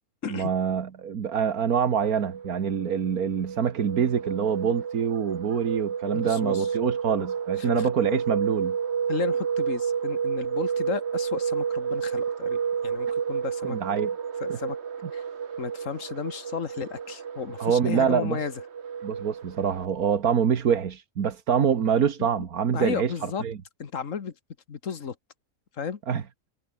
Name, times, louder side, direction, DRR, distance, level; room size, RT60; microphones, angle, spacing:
voice 1, 0.3-8.8 13.6-14.1 14.5-14.6 17.6-18.5 19.0-23.6 26.1-26.2, right 7 dB, 75° right, 1.9 m, -25 dB
sound 1, 2.1-19.8, right 7 dB, 50° right, 1.4 m, -31 dB
voice 2, 6.1-6.7 7.6-7.9 9.1-13.8 14.4-14.8 15.1-15.2 15.6-18.5 22.2-22.3 22.7-23.4 23.8-24.3 24.7-25.1 25.8-26.0, left 6 dB, 60° left, 1.8 m, -33 dB
omnidirectional pair, 1.6 m